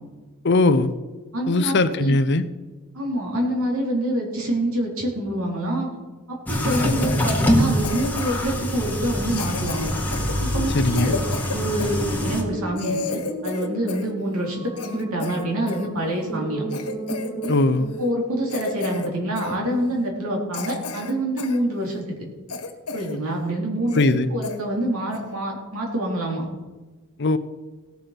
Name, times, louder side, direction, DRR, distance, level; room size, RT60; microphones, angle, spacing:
voice 1, 0.4-0.9 1.5-2.4 10.7-11.1 17.5-17.9 23.9-24.3 27.2-27.4, left 2 dB, 50° left, 11 dB, 0.6 m, -19 dB
voice 2, 1.3-2.2 2.9-5.9 6.3-9.9 10.4-11.2 11.5-16.6 17.4-17.5 18.0-22.0 22.9-24.1 24.3-26.4, right 1 dB, 75° right, -1 dB, 3.7 m, -26 dB
sound 1, 6.5-12.4, equal, 10° left, 1.6 m, -24 dB
Cough, 6.7-7.2 7.8-8.5 9.3-12.0 12.4-12.5 12.8-14.1 14.4-15.9 16.3-16.4 16.7-17.6 17.9-18.1 18.5-19.1 19.4-19.6 20.1-20.2 20.5-21.6 22.0-22.1 22.5-23.2 23.5-23.6 23.9-24.2 24.4-24.6 25.1-25.3, left 4 dB, 90° left, 1.5 m, -32 dB
sound 2, 9.8-19.2, right 1 dB, 10° right, 1.9 m, -35 dB
17.5 x 7.2 x 5.9 m, 1.2 s
head